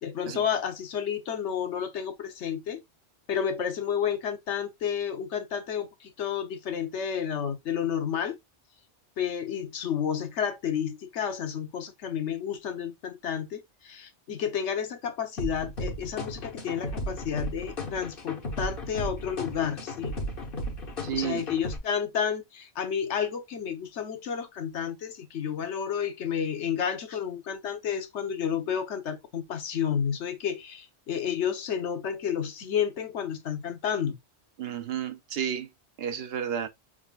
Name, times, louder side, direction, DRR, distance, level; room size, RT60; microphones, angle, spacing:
voice 1, 0.0-2.8 3.3-8.4 9.2-20.1 21.1-34.2, left 8 dB, 80° left, 1.1 m, -31 dB
sound 1, 15.4-21.8, left 1 dB, 55° left, 1.3 m, -35 dB
voice 2, 21.0-21.5 34.6-35.7 36.0-36.7, right 9 dB, 65° right, 0.8 m, -31 dB
6.1 x 3.7 x 2.4 m
omnidirectional pair, 1.2 m